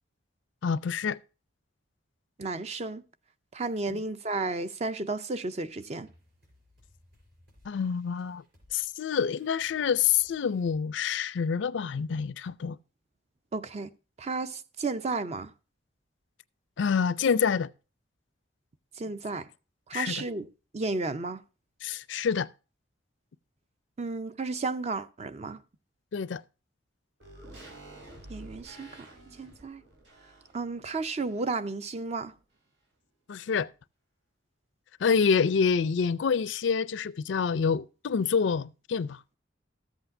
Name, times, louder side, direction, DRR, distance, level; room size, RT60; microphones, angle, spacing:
voice 1, 0.6-1.2 7.6-8.4 8.7-12.8 16.8-17.7 19.9-20.2 21.8-22.5 26.1-26.4 33.3-33.7 35.0-39.2, left 6 dB, 75° left, 0.4 m, -27 dB
voice 2, 2.4-3.0 3.5-6.1 13.5-13.9 14.2-15.5 19.0-19.5 19.9-20.5 20.7-21.4 24.0-25.6 28.3-29.1 29.4-29.8 30.5-32.3, right 3 dB, 35° right, 0.5 m, -33 dB
sound 1, 5.7-10.8, left 1 dB, 60° right, 4.9 m, -63 dB
sound 2, 27.2-31.7 32.0-32.1, right 1 dB, 80° right, 3.7 m, -50 dB
13.5 x 8.1 x 2.6 m
head